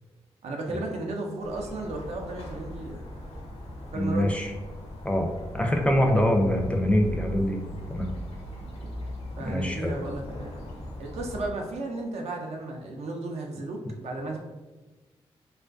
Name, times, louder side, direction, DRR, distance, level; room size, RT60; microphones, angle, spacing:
voice 1, 0.4-3.1 3.9-4.3 8.6-8.9 9.4-10.6 11.0-14.4, right 2 dB, 70° right, 1 dB, 0.5 m, -34 dB
sound 1, 1.4-11.5, left 1 dB, 65° left, 0.6 m, -39 dB
voice 2, 3.9-4.5 5.0-5.3 5.5-7.6 7.9-8.1 9.4-9.9, left 1 dB, 10° left, 2 dB, 0.4 m, -24 dB
2.3 x 2.2 x 2.4 m, 1.2 s
supercardioid pair, 50°, 12 cm